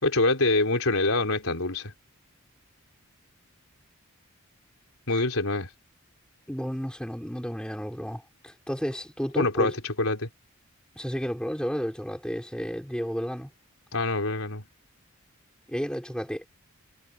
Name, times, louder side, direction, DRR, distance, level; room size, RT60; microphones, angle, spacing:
voice 1, 0.0-1.9 5.1-5.7 9.4-10.3 13.9-14.7, left 2 dB, 75° left, 3.8 m, -25 dB
voice 2, 6.5-9.7 11.0-13.5 15.7-16.5, equal, 5° left, 4.7 m, -32 dB
head